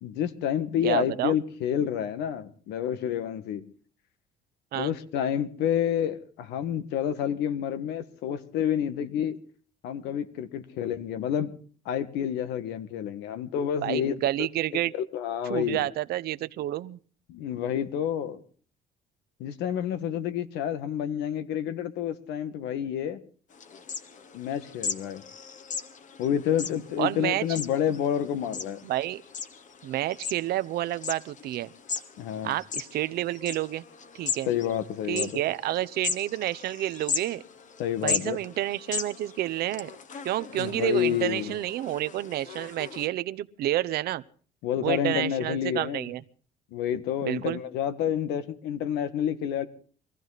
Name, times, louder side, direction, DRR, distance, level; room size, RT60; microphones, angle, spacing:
voice 1, 0.0-3.6 4.7-9.4 9.8-11.5 11.8-14.1 15.1-15.9 17.3-18.4 19.4-23.2 24.3-25.2 26.2-28.8 32.2-32.5 34.5-35.4 37.8-38.4 40.4-41.5 44.6-46.1 46.7-49.7, left 9 dB, 90° left, 1.6 m, -29 dB
voice 2, 0.8-1.4 4.7-4.9 13.8-14.9 15.5-17.0 27.0-27.4 28.8-29.2 29.8-31.7 32.4-33.8 34.1-34.5 35.1-37.4 38.0-39.9 40.2-44.2 44.8-46.2 47.2-47.6, right 14 dB, 70° right, 0.8 m, -29 dB
sound 1, 23.5-43.1, left 6 dB, 50° left, 1.6 m, -38 dB
23.0 x 15.0 x 4.1 m
cardioid pair, 110°, 17 cm